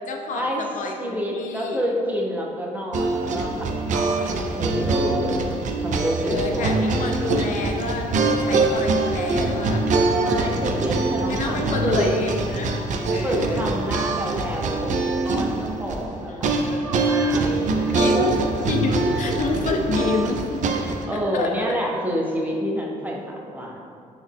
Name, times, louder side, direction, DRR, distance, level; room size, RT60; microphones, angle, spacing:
voice 1, 0.1-1.9 6.3-9.9 11.3-12.8 13.1-13.7 16.3-16.6 17.9-21.7, left 3 dB, 60° left, 2 dB, 0.4 m, -28 dB
voice 2, 1.0-5.5 5.8-6.8 10.2-12.2 13.2-18.2 21.1-23.8, equal, 10° right, -2 dB, 0.6 m, -28 dB
sound 1, 2.9-21.0, right 3 dB, 55° right, 0.4 m, -24 dB
3.8 x 2.0 x 3.5 m, 2.3 s
cardioid pair, 80°, 15 cm